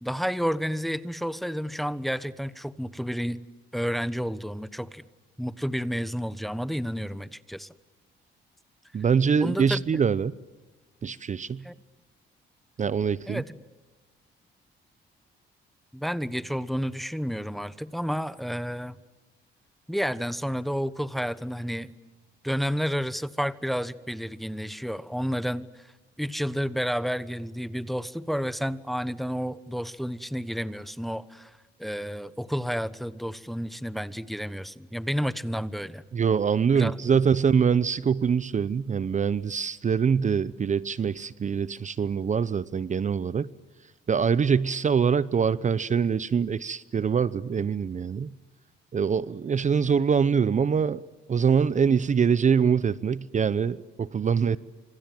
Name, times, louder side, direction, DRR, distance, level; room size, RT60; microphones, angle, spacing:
voice 1, 0.0-3.4 3.7-5.0 5.4-7.7 9.4-9.8 11.6-11.7 13.3-13.6 15.9-19.0 19.9-21.9 22.4-25.9 26.2-31.5 31.8-36.0 36.7-37.2, equal, ahead, 16 dB, 1.2 m, -30 dB
voice 2, 8.9-10.3 11.0-11.6 12.8-13.4 36.1-43.5 44.1-48.3 48.9-51.0 51.3-54.6, right 6 dB, 40° right, 18 dB, 0.8 m, -24 dB
28.5 x 26.5 x 7.7 m, 1.2 s
cardioid pair, 90°, 20 cm